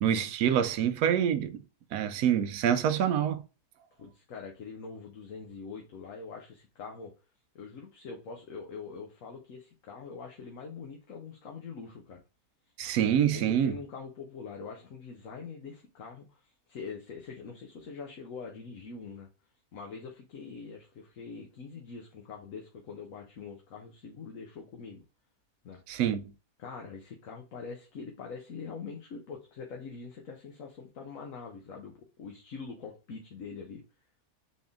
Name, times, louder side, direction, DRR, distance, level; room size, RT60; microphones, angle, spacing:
voice 1, 0.0-1.6 1.9-3.4 12.8-13.8 25.9-26.3, right 9 dB, 75° right, 1.1 m, -26 dB
voice 2, 4.0-7.1 7.5-12.2 13.3-19.3 19.7-25.0 25.6-25.8 26.6-33.8, left 5 dB, 60° left, 1.2 m, -44 dB
4.2 x 3.6 x 3.5 m
omnidirectional pair, 1.6 m